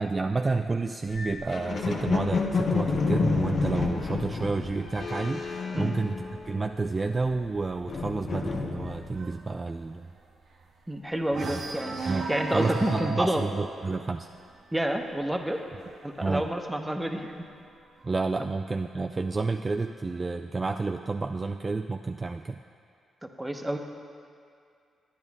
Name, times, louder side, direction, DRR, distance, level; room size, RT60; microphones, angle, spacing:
voice 1, 0.0-10.1 11.4-11.6 12.1-12.3 12.5-14.3 16.2-16.5 18.0-22.6, right 3 dB, 35° right, 5 dB, 0.3 m, -30 dB
sound 1, 1.1-6.7 7.0-9.2, left 4 dB, 55° left, 0.8 m, -30 dB
sound 2, 2.5-6.1 6.5-6.9 7.1-7.2 7.6-10.9 11.3-17.8 18.7-19.7, right 3 dB, 65° right, 0.9 m, -40 dB
voice 2, 10.9-13.4 14.7-15.6 16.0-17.5 23.2-23.8, right 1 dB, 10° right, 4 dB, 0.9 m, -29 dB
9.9 x 9.4 x 3.6 m, 2.3 s
supercardioid pair, 50°, 0 cm